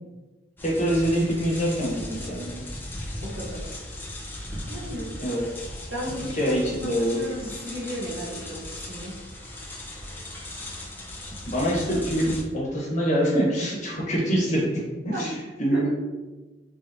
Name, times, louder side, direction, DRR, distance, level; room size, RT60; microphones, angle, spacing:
voice 1, 0.6-2.6 5.2-5.5 6.1-7.2 11.5-15.9, equal, 40° left, -5 dB, 1.2 m, -25 dB
sound 1, 0.6-12.4, left 1 dB, 10° left, 0.5 m, -37 dB
voice 2, 3.2-3.6 4.7-5.1 5.9-6.6 6.8-6.9 7.2-8.6 8.9-9.2 15.1-15.3 15.7-15.9, equal, 80° right, -5 dB, 1.2 m, -34 dB
3.4 x 3.4 x 2.8 m, 1.2 s
head